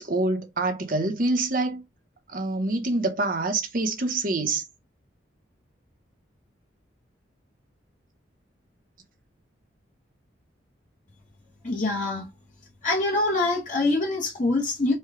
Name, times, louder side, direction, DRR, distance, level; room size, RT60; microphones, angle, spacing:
voice 1, 0.0-1.8 2.3-4.6, right 2 dB, 45° right, 0.9 m, -26 dB
voice 2, 11.6-12.3 12.8-14.9, left 2 dB, 40° left, 1.1 m, -24 dB
4.4 x 2.3 x 4.8 m
head